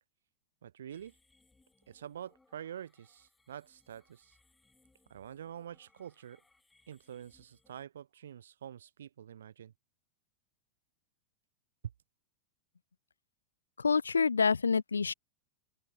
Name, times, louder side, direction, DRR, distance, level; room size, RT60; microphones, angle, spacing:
voice 1, 0.6-1.1 1.9-4.4 5.1-6.4 6.9-9.7, right 9 dB, 65° right, 3.3 m, -47 dB
sound 1, 0.9-7.9, left 3 dB, 10° left, 7.6 m, -70 dB
voice 2, 13.8-15.1, left 5 dB, 75° left, 0.3 m, -27 dB
open air
figure-of-eight pair, 90°, 0 cm